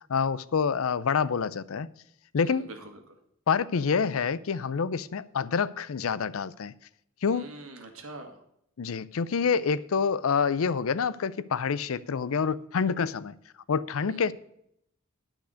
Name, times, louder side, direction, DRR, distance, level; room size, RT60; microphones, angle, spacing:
voice 1, 0.1-1.9 2.3-2.7 3.5-6.7 7.2-7.5 8.8-13.4 13.7-14.3, left 6 dB, 75° left, 0.5 m, -27 dB
voice 2, 2.4-3.2 7.3-8.4 14.1-14.3, right 2 dB, 75° right, 1.9 m, -44 dB
10.0 x 5.9 x 6.3 m
head